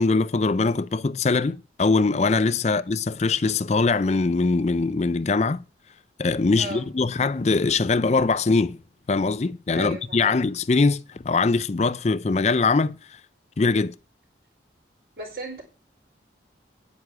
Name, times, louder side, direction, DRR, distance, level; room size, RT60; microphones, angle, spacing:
voice 1, 0.0-5.6 6.2-8.8 9.1-13.0 13.6-13.9, left 3 dB, 35° left, 0.4 m, -22 dB
voice 2, 9.7-10.4 15.2-15.6, right 2 dB, 55° right, 4.4 m, -36 dB
9.7 x 9.6 x 4.8 m
head